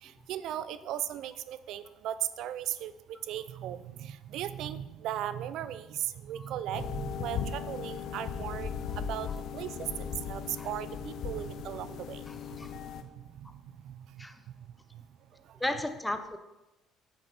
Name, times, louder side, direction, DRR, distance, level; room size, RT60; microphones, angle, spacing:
voice 1, 0.0-9.3 9.5-9.7 10.0-12.2 13.4-14.3, right 11 dB, 65° right, 14 dB, 0.4 m, -37 dB
sound 1, 6.7-13.0, left 7 dB, 60° left, 0.7 m, -37 dB
voice 2, 12.3-12.7 14.2-14.4 15.6-16.4, left 1 dB, 5° left, 8 dB, 0.6 m, -35 dB
8.1 x 6.6 x 4.4 m, 1.0 s
cardioid pair, 125°, 0 cm